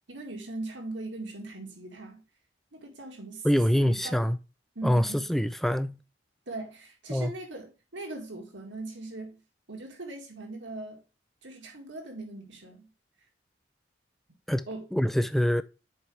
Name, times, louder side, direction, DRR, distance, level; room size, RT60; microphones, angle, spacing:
voice 1, 0.1-2.2 2.7-4.3 4.8-5.3 6.5-9.4 9.7-11.0 11.4-12.9 14.7-14.8, right 2 dB, 85° right, 2.0 m, -40 dB
voice 2, 3.4-4.4 4.8-6.0 7.1-7.3 14.5-15.6, equal, ahead, 0.3 m, -25 dB
7.8 x 5.0 x 3.2 m
head